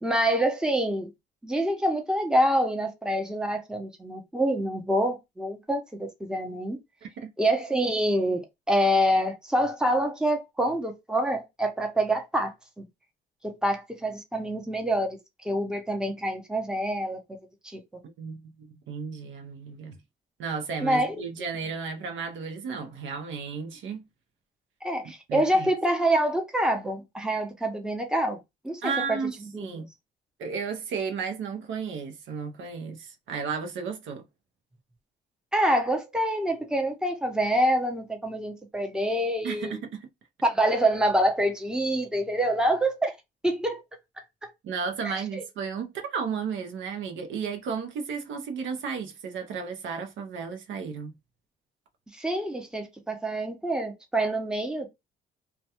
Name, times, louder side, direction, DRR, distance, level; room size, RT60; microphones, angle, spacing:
voice 1, 0.0-1.1 1.4-6.8 7.4-12.9 13.4-15.2 15.4-17.2 17.7-17.8 20.8-21.2 24.8-28.4 28.6-29.2 29.5-29.8 35.5-39.8 40.4-43.2 43.4-43.8 45.0-45.2 52.1-54.9, right 1 dB, 5° right, 0.7 m, -26 dB
voice 2, 7.0-7.3 18.2-20.0 20.4-24.1 25.3-25.7 28.8-29.9 30.4-34.3 39.4-40.1 44.6-51.1, right 5 dB, 75° right, 0.6 m, -33 dB
2.3 x 2.2 x 2.8 m
cardioid pair, 90°, 20 cm